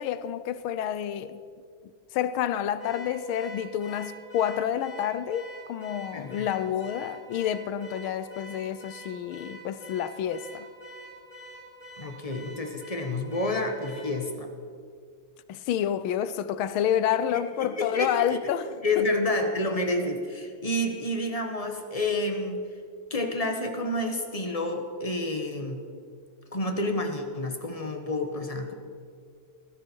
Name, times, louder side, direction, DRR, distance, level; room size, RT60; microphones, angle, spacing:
voice 1, 0.0-1.4 2.1-10.7 15.5-18.7, left 10 dB, 80° left, 1.5 m, -29 dB
Car / Alarm, 2.8-14.2, right 1 dB, 35° left, 4.0 m, -46 dB
voice 2, 6.1-6.5 12.0-14.5 17.3-18.4 18.8-22.6 23.1-25.8 26.5-28.7, left 1 dB, 20° left, 1.1 m, -29 dB
18.5 x 15.5 x 4.6 m
omnidirectional pair, 2.4 m